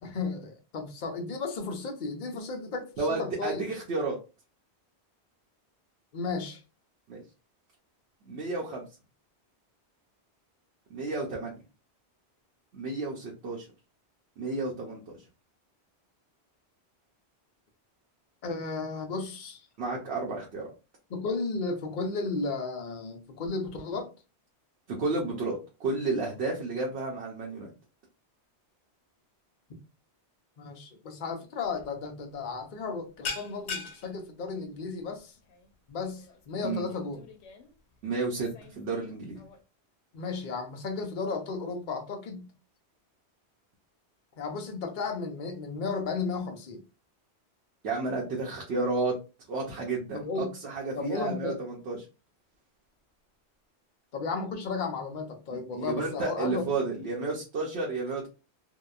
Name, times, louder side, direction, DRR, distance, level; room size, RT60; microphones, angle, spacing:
voice 1, 0.0-3.6 6.1-6.6 18.4-19.7 21.1-24.1 30.6-35.3 35.9-37.3 40.1-42.5 44.4-46.8 50.1-50.5 51.0-51.6 54.1-56.6, left 4 dB, 55° left, 4 dB, 0.7 m, -34 dB
voice 2, 3.0-4.2 7.1-7.2 8.3-8.8 10.9-11.6 12.7-13.7 14.4-15.2 19.8-20.6 24.9-27.7 36.6-36.9 38.0-38.5 38.8-39.4 47.8-49.1 49.5-52.0 55.5-58.3, right 3 dB, 75° right, -2 dB, 0.9 m, -32 dB
sound 1, 31.6-31.9 32.2-32.5 32.7-39.6, left 4 dB, 85° left, 0.9 m, -42 dB
2.8 x 2.1 x 2.3 m, 0.31 s
omnidirectional pair, 1.1 m